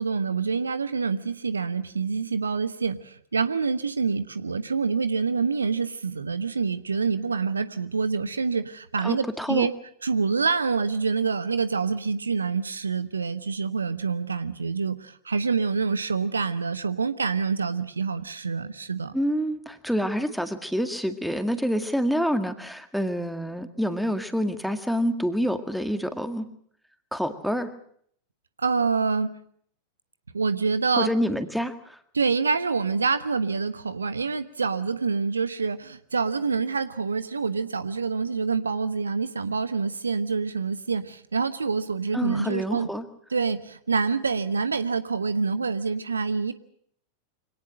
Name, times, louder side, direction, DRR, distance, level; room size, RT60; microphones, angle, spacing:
voice 1, 0.0-9.7 10.0-19.2 28.6-29.3 30.3-31.1 32.1-42.9 43.3-46.5, right 5 dB, 75° right, 13 dB, 1.1 m, -26 dB
voice 2, 9.0-9.7 19.1-26.5 27.1-27.7 31.0-32.0 42.1-43.1, equal, ahead, 8 dB, 1.9 m, -27 dB
25.0 x 18.0 x 7.6 m, 0.66 s
figure-of-eight pair, 90°, 0 cm